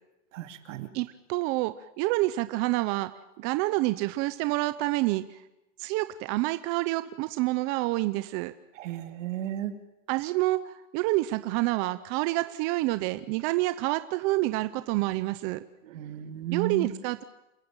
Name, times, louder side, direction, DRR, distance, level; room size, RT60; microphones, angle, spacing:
voice 1, 0.3-0.9 8.8-9.7 15.9-16.9, right 11 dB, 75° right, 7 dB, 2.8 m, -34 dB
voice 2, 0.9-3.1 3.4-5.4 5.8-8.5 10.1-15.6 16.5-17.2, right 19 dB, 35° right, 12 dB, 0.7 m, -28 dB
27.5 x 15.5 x 9.0 m, 0.98 s
supercardioid pair, 155°, 38 cm